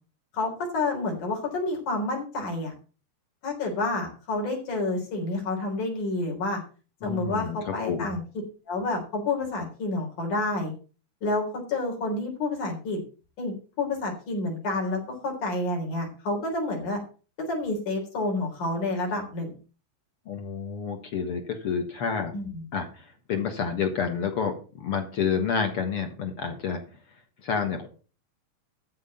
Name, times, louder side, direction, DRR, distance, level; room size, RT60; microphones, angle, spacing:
voice 1, 0.3-2.7 3.4-6.6 7.0-8.2 8.7-10.7 11.2-13.0 13.4-17.0 17.4-19.5 22.3-22.6, left 2 dB, 70° left, 1 dB, 5.1 m, -29 dB
voice 2, 7.0-8.2 20.3-22.3 22.7-26.8 27.4-27.9, left 6 dB, 50° left, 5 dB, 2.1 m, -29 dB
13.5 x 4.8 x 7.1 m, 0.36 s
omnidirectional pair, 3.7 m